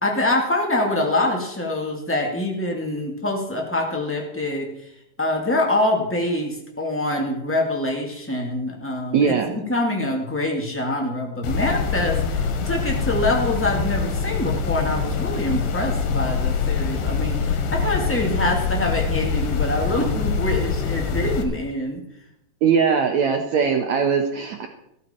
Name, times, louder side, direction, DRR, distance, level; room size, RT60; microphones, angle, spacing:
voice 1, 0.0-4.9 5.2-22.0, left 1 dB, 10° left, 0 dB, 0.6 m, -25 dB
voice 2, 9.1-9.5 22.6-24.7, right 6 dB, 75° right, 5 dB, 1.7 m, -20 dB
sound 1, 11.4-21.4, left 5 dB, 85° left, 3.6 m, -24 dB
14.0 x 13.5 x 4.4 m, 0.80 s
omnidirectional pair, 4.6 m